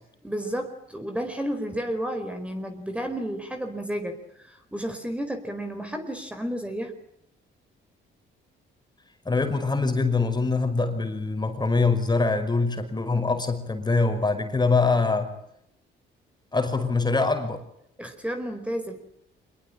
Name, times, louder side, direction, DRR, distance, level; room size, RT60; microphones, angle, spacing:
voice 1, 0.2-6.9 18.0-18.9, equal, 5° right, 5 dB, 4.8 m, -32 dB
voice 2, 9.3-15.3 16.5-17.6, left 3 dB, 20° left, 7 dB, 5.5 m, -24 dB
26.0 x 22.0 x 8.9 m, 0.75 s
cardioid pair, 90°, 20 cm